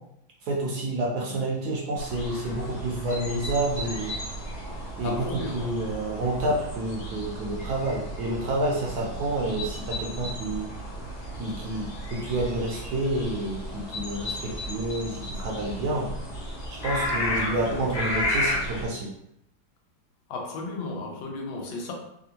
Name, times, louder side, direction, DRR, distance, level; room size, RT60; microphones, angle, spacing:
voice 1, 0.4-4.2 5.0-10.7 11.4-16.1 16.8-19.1, right 1 dB, 70° right, -2 dB, 1.0 m, -29 dB
sound 1, 2.0-18.9, equal, 55° left, 0.7 m, -33 dB
voice 2, 5.0-5.7 17.2-17.9 20.3-21.9, left 3 dB, 85° left, 1 dB, 1.5 m, -34 dB
3.5 x 2.4 x 2.8 m, 0.78 s
omnidirectional pair, 2.1 m